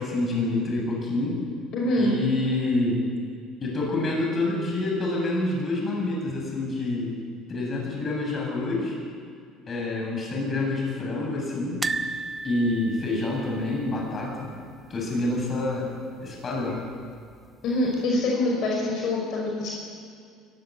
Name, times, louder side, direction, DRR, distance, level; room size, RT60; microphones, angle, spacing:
voice 1, 0.0-1.4 2.0-3.0 3.6-7.1 7.5-9.0 9.7-11.8 12.4-14.6 14.9-15.9 16.2-16.8, left 2 dB, 30° left, -1 dB, 7.9 m, -27 dB
voice 2, 1.7-2.1 17.6-19.7, left 2 dB, 55° left, -2 dB, 5.7 m, -25 dB
sound 1, 11.8-14.9 15.1-15.3 15.6-15.7 16.9-17.5 18.0-18.1, right 4 dB, 20° right, 0.8 m, -34 dB
23.5 x 15.0 x 9.5 m, 2.3 s
cardioid pair, 125°, 0 cm